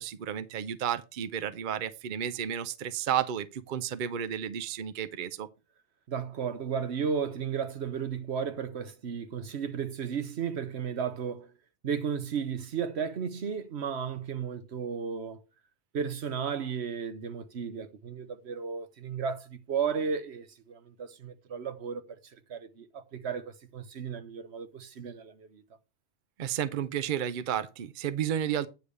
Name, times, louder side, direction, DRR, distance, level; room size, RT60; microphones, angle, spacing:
voice 1, 0.0-5.5 26.4-28.7, right 9 dB, 55° right, 0.7 m, -32 dB
voice 2, 6.1-11.5 11.8-15.4 15.9-25.6, right 6 dB, 70° right, 1.2 m, -34 dB
9.3 x 3.3 x 6.6 m
omnidirectional pair, 1.2 m